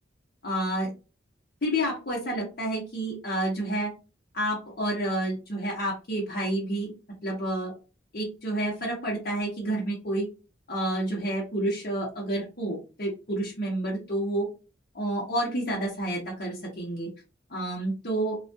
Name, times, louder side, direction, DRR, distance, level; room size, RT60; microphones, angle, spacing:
voice 1, 0.4-0.9 1.6-3.9 4.3-6.9 7.2-7.7 8.1-10.3 10.7-14.5 14.9-17.1 17.5-18.4, right 1 dB, 50° left, -5 dB, 0.8 m, -29 dB
2.3 x 2.2 x 2.6 m, 0.31 s
head